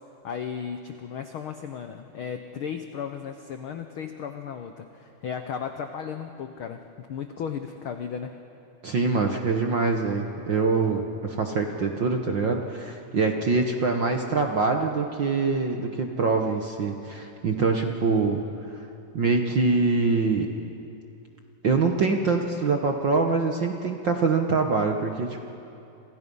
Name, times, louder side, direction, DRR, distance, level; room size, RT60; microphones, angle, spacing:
voice 1, 0.2-8.3, left 7 dB, 85° left, 6 dB, 1.1 m, -35 dB
voice 2, 8.8-18.4 18.7-18.8 19.1-20.5 21.6-25.5, right 4 dB, 55° right, 3 dB, 1.3 m, -24 dB
28.5 x 27.5 x 5.5 m, 2.8 s
omnidirectional pair, 3.7 m